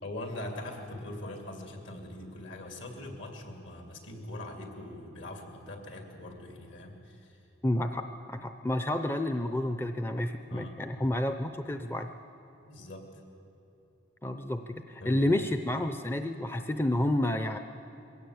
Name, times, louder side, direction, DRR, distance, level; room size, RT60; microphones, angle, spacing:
voice 1, 0.0-7.4 10.5-10.9 12.6-13.2 15.0-15.4, left 1 dB, 70° left, 3 dB, 2.7 m, -42 dB
voice 2, 7.6-12.1 14.2-17.6, left 1 dB, 10° left, 8 dB, 0.5 m, -30 dB
21.5 x 16.5 x 8.0 m, 2.9 s
head